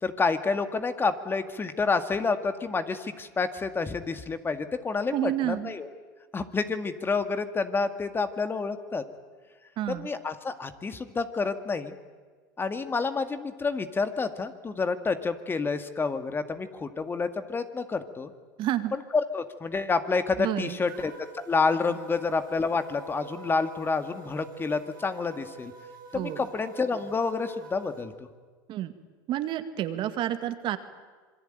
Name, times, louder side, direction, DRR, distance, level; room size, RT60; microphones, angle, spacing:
voice 1, 0.0-5.9 6.3-9.0 9.9-12.0 12.6-18.3 18.9-25.7 26.1-28.1, left 4 dB, 20° left, 9 dB, 2.0 m, -29 dB
voice 2, 5.1-5.7 9.8-10.1 18.6-19.0 20.4-20.8 26.1-26.4 28.7-28.9 29.3-30.8, right 12 dB, 50° right, 10 dB, 2.1 m, -29 dB
sound 1, 20.9-28.1, right 6 dB, 85° right, 6.2 m, -47 dB
26.5 x 22.5 x 9.1 m, 1.5 s
supercardioid pair, 105°, 11 cm